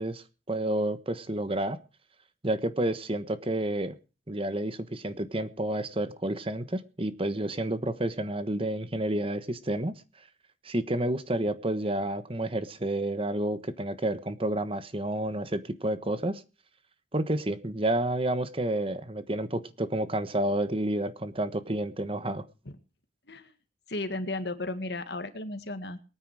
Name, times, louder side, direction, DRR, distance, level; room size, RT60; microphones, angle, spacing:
voice 1, 0.0-1.8 2.4-3.9 4.3-9.9 10.6-16.4 17.1-22.4, right 1 dB, 30° right, 12 dB, 1.2 m, -30 dB
voice 2, 23.9-26.0, left 2 dB, 70° left, 10 dB, 1.9 m, -34 dB
21.5 x 9.7 x 4.9 m, 0.33 s
head